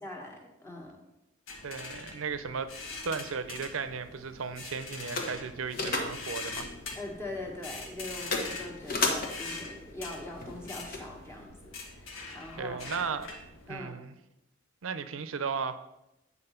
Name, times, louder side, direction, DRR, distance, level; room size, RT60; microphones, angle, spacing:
voice 1, 0.0-1.0 6.9-13.0 13.7-13.9, left 1 dB, 15° left, 1.5 m, -42 dB
sound 1, 1.5-13.7, left 3 dB, 75° left, 1.5 m, -43 dB
voice 2, 1.6-2.7 3.0-6.7 12.6-13.3 13.7-14.1 14.8-15.8, right 5 dB, 85° right, 0.6 m, -35 dB
sound 2, 3.4-11.5, left 3 dB, 45° left, 1.1 m, -37 dB
8.8 x 4.2 x 5.6 m
head